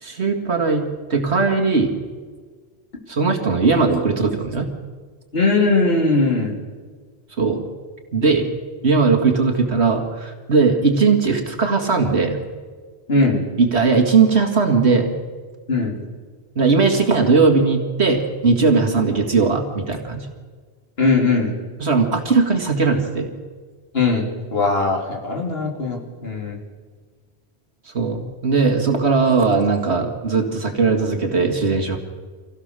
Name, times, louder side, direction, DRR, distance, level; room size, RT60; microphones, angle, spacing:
voice 1, 0.0-1.9 3.1-4.7 7.4-7.6 8.1-8.5 8.8-12.4 13.6-15.1 16.6-20.3 21.8-23.3 27.9-32.0, right 4 dB, 80° right, 3 dB, 2.4 m, -18 dB
voice 2, 5.3-6.5 13.1-13.4 15.7-15.9 21.0-21.5 23.9-26.6, left 3 dB, 65° left, 0 dB, 3.5 m, -19 dB
25.5 x 16.5 x 6.8 m, 1.5 s
omnidirectional pair, 1.1 m